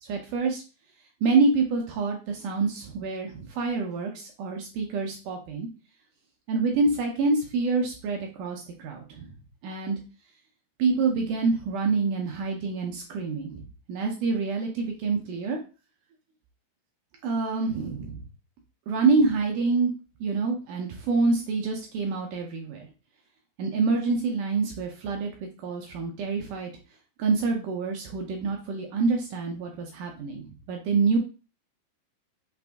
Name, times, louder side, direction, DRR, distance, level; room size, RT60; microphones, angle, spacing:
voice 1, 0.0-0.6 1.2-5.7 6.5-9.3 9.6-10.0 10.8-13.6 13.9-15.6 17.2-18.2 18.9-19.9 20.2-22.9 23.6-25.3 25.6-26.7 27.2-30.4 30.7-31.2, right 4 dB, 75° right, 1 dB, 2.0 m, -26 dB
5.9 x 2.6 x 3.4 m, 0.33 s
omnidirectional pair, 4.3 m